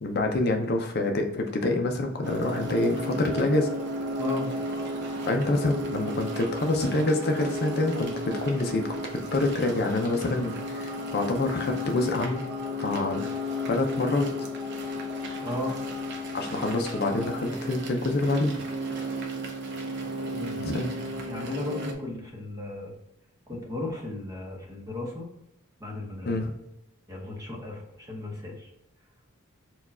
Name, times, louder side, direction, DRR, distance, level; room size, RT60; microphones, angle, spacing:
voice 1, 0.0-3.7 5.3-12.4 12.8-13.2 13.7-14.3 16.3-18.6 20.6-20.9 26.3-26.5, left 2 dB, 45° left, 3 dB, 0.5 m, -26 dB
sound 1, 2.2-21.9, left 1 dB, 55° right, 0.7 m, -34 dB
sound 2, 2.2-17.4, right 2 dB, 80° right, 0.9 m, -43 dB
voice 2, 4.2-4.5 13.1-13.3 15.4-15.8 20.3-20.6 21.2-22.9 23.5-25.2 25.8-26.3 27.1-28.7, left 2 dB, 15° right, -1 dB, 0.8 m, -35 dB
4.5 x 2.3 x 4.2 m, 0.86 s
head